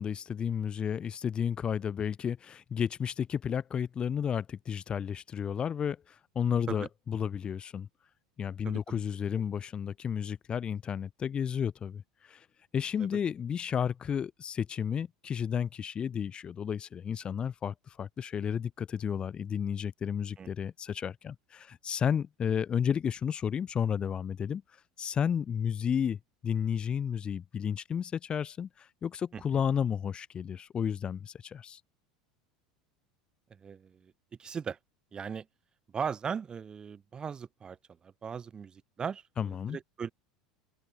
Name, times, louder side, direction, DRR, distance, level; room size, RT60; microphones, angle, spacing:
voice 1, 0.0-7.9 8.4-12.4 12.7-24.6 25.0-31.8 39.4-39.8, left 8 dB, 30° left, 7.0 m, -32 dB
voice 2, 8.6-9.0 20.4-20.5 29.3-29.6 33.6-34.1 34.4-34.8 35.1-35.5 35.9-37.8 38.0-40.1, right 6 dB, 25° right, 4.5 m, -38 dB
figure-of-eight pair, 75°, 3 cm